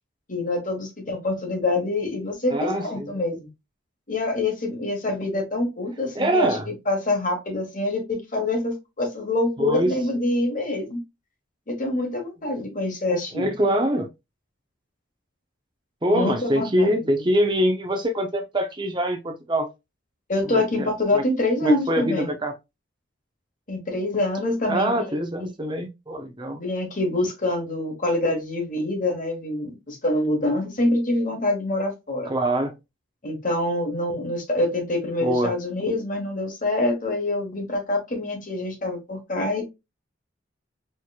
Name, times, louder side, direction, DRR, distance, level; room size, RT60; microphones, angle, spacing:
voice 1, 0.3-3.5 4.1-11.0 11.7-13.5 16.1-17.2 20.3-22.3 23.7-25.1 25.4-25.5 26.5-32.3 33.2-39.6, left 2 dB, 40° left, 1.3 m, -26 dB
voice 2, 2.5-3.2 6.1-6.7 9.6-9.9 13.3-14.1 16.0-19.7 20.4-20.9 21.1-21.2 21.6-22.5 24.7-26.6 32.3-32.7 35.2-35.6, equal, 25° right, 0.6 m, -24 dB
4.4 x 3.1 x 2.3 m
head